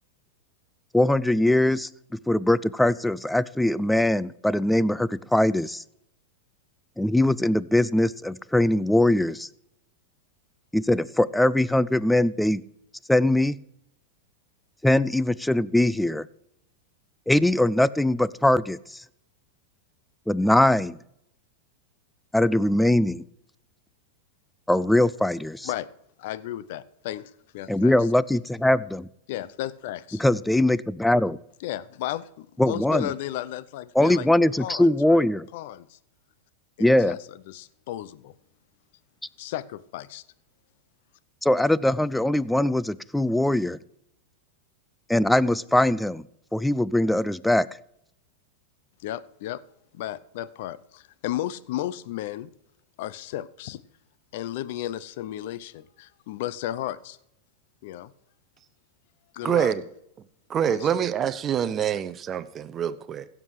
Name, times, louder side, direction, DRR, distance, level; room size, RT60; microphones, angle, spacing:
voice 1, 0.9-5.8 7.0-9.5 10.7-12.6 13.1-13.6 14.8-16.3 17.3-19.0 20.3-21.0 22.3-23.2 24.7-25.7 27.7-29.1 30.2-31.4 32.6-33.1 34.0-35.5 36.8-37.2 41.4-43.8 45.1-46.2 46.5-47.7, left 1 dB, 5° left, 0.4 m, -21 dB
voice 2, 26.2-28.0 29.3-30.2 31.6-34.3 34.6-35.2 35.5-36.0 36.8-38.3 39.4-40.2 49.0-49.6 49.9-52.5 53.0-53.8 54.3-57.2 57.8-58.1 59.3-59.7 60.7-61.1, left 13 dB, 65° left, 0.7 m, -34 dB
voice 3, 59.4-59.8 60.5-63.3, right 9 dB, 30° right, 0.8 m, -26 dB
16.0 x 7.5 x 4.8 m
hypercardioid pair, 125°, 0 cm